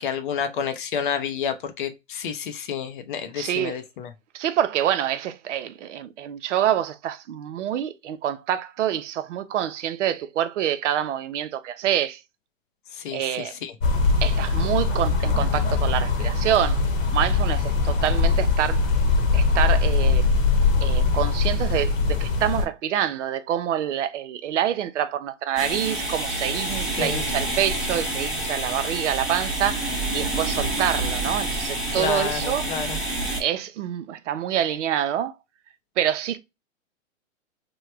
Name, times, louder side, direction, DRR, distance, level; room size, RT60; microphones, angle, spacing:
voice 1, 0.0-4.1 12.9-13.7 26.8-27.3 31.9-33.0, left 7 dB, 40° left, 0.5 m, -30 dB
voice 2, 3.4-3.8 4.3-12.2 13.1-13.5 14.2-16.8 17.1-18.9 19.3-20.2 20.8-29.9 30.1-32.7 33.4-35.4 36.0-36.4, right 10 dB, 65° right, 0.6 m, -26 dB
sound 1, 13.8-22.6, left 4 dB, 75° left, 1.0 m, -21 dB
sound 2, 25.6-33.4, right 2 dB, ahead, 0.6 m, -28 dB
3.0 x 2.1 x 3.1 m
hypercardioid pair, 145°, 40 cm